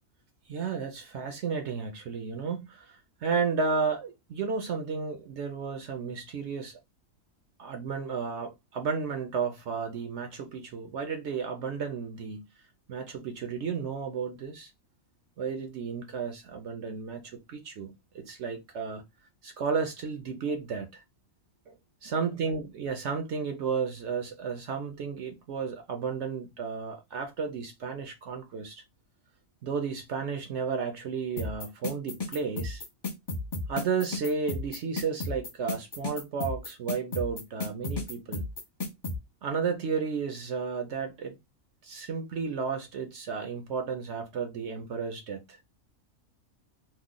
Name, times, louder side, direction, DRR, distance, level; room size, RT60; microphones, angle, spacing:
voice 1, 0.5-6.8 7.6-12.4 12.9-14.7 15.4-19.0 19.4-21.0 21.7-21.8 22.0-28.8 29.6-32.8 33.7-38.5 39.4-41.4 41.8-45.6, right 5 dB, 65° right, 0.8 m, -33 dB
sound 1, 31.4-39.2, left 2 dB, 40° left, 0.3 m, -33 dB
3.1 x 2.1 x 3.7 m
omnidirectional pair, 1.5 m